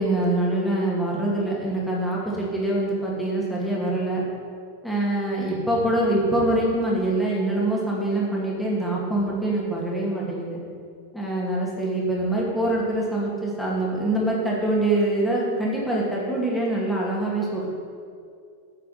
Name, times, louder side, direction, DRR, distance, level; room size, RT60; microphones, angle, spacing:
voice 1, 0.0-4.2 4.8-10.6 11.1-17.7, right 1 dB, 5° left, -5 dB, 2.5 m, -24 dB
10.0 x 6.0 x 5.7 m, 2.3 s
figure-of-eight pair, 90°, 0 cm